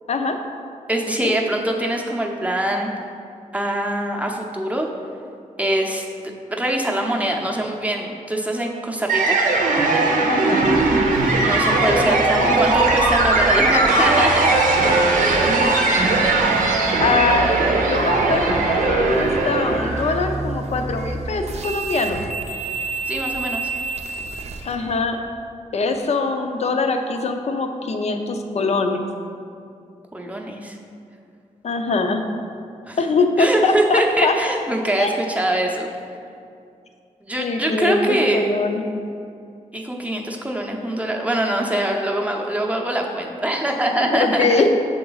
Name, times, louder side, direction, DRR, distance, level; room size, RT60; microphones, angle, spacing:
voice 1, 0.9-2.9 3.5-4.9 5.6-6.0 6.5-9.4 11.4-14.5 23.1-23.7 30.1-30.8 32.9-33.0 33.4-35.9 37.2-38.5 39.7-44.7, right 1 dB, 10° right, 0 dB, 0.7 m, -23 dB
sound 1, 9.1-20.2, right 2 dB, 90° right, 0.7 m, -18 dB
voice 2, 10.3-10.8 12.3-12.5 17.0-17.5 17.8-22.2 24.6-25.2 25.7-29.0 31.6-32.2 33.0-34.3 35.0-35.2 37.4-38.8 44.0-44.7, left 3 dB, 55° left, 5 dB, 0.5 m, -22 dB
sound 2, 10.6-25.0, right 3 dB, 55° right, 0.5 m, -31 dB
6.6 x 3.8 x 4.0 m, 2.4 s
cardioid pair, 85°, 14 cm